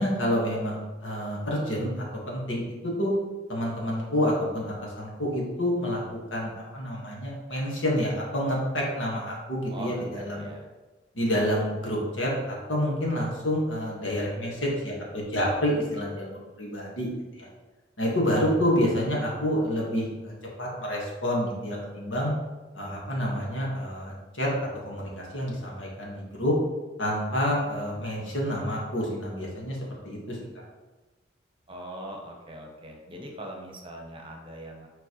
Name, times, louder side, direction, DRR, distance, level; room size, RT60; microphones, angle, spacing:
voice 1, 0.0-3.1 3.5-6.0 6.3-10.3 11.1-17.5 18.0-20.3 20.6-22.3 22.7-26.5 27.0-29.8 30.0-30.4, equal, 85° left, -3 dB, 1.7 m, -28 dB
voice 2, 9.7-10.7 31.7-34.9, right 1 dB, 30° right, 1 dB, 1.0 m, -41 dB
7.2 x 4.5 x 3.2 m, 1.2 s
head